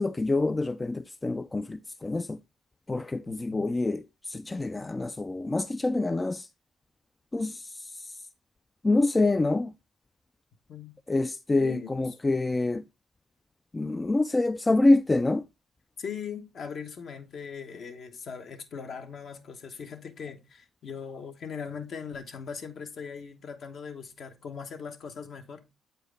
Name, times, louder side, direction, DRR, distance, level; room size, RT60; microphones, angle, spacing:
voice 1, 0.0-2.4 2.9-6.5 7.3-8.2 8.8-9.7 11.1-12.8 13.7-15.5, left 2 dB, 20° left, 0.3 m, -26 dB
voice 2, 11.6-11.9 16.0-25.6, left 6 dB, 60° left, 1.1 m, -40 dB
7.9 x 4.5 x 3.3 m
cardioid pair, 90°, 0 cm